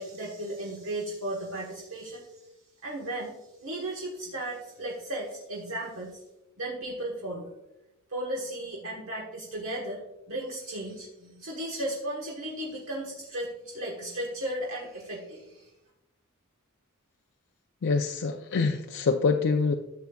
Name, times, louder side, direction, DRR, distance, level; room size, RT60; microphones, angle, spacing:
voice 1, 0.0-2.4 2.8-6.2 6.6-7.5 8.1-10.0 10.3-15.7, right 1 dB, 65° right, -2 dB, 1.3 m, -35 dB
voice 2, 17.8-19.8, left 4 dB, 55° left, 4 dB, 0.4 m, -25 dB
12.0 x 7.0 x 2.3 m, 0.92 s
head